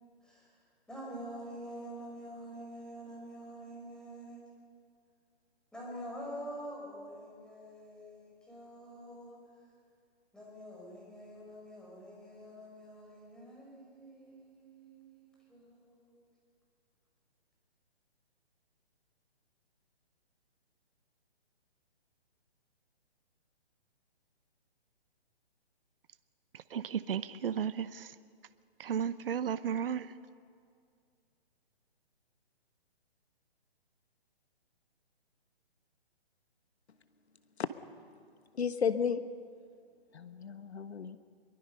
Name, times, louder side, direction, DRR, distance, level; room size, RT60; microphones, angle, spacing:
voice 1, 0.2-0.6 0.9-4.4 5.7-9.4 10.3-16.2, equal, ahead, 4.9 m, -46 dB
voice 2, 26.5-28.2 28.8-30.1, right 8 dB, 60° right, 0.8 m, -34 dB
voice 3, 38.5-39.2 40.1-41.2, left 7 dB, 75° left, 1.4 m, -33 dB
23.5 x 22.5 x 5.5 m
hypercardioid pair, 155°, 32 cm